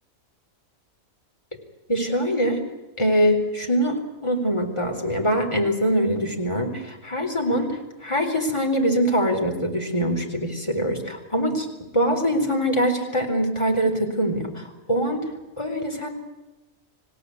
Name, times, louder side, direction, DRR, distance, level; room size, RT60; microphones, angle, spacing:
voice 1, 1.9-2.6 3.0-4.0 4.2-11.7 11.9-15.2 15.6-16.1, equal, 20° left, 3 dB, 4.1 m, -23 dB
27.0 x 17.0 x 9.6 m, 1.1 s
omnidirectional pair, 1.5 m